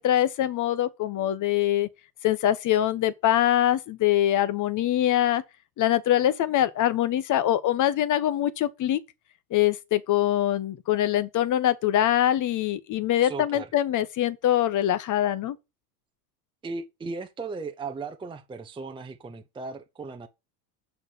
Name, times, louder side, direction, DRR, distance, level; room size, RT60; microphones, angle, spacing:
voice 1, 0.0-1.9 2.2-5.4 5.8-9.0 9.5-15.6, left 12 dB, 40° left, 1.1 m, -23 dB
voice 2, 13.2-13.7 16.6-20.3, right 4 dB, 10° right, 0.7 m, -36 dB
7.2 x 4.6 x 6.8 m
supercardioid pair, 110°, 47 cm